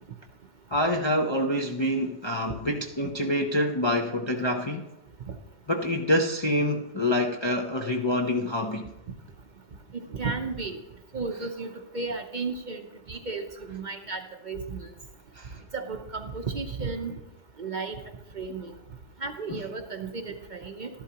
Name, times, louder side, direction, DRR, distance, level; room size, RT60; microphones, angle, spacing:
voice 1, 0.7-4.8 5.7-8.9 15.3-15.6 19.5-19.6, left 1 dB, 30° left, 1 dB, 0.5 m, -26 dB
voice 2, 9.9-10.8 11.1-14.9 15.7-17.1 17.6-18.0 18.3-18.7 19.2-20.9, right 4 dB, 45° right, 5 dB, 0.7 m, -34 dB
13.0 x 11.5 x 2.9 m, 0.96 s
omnidirectional pair, 1.3 m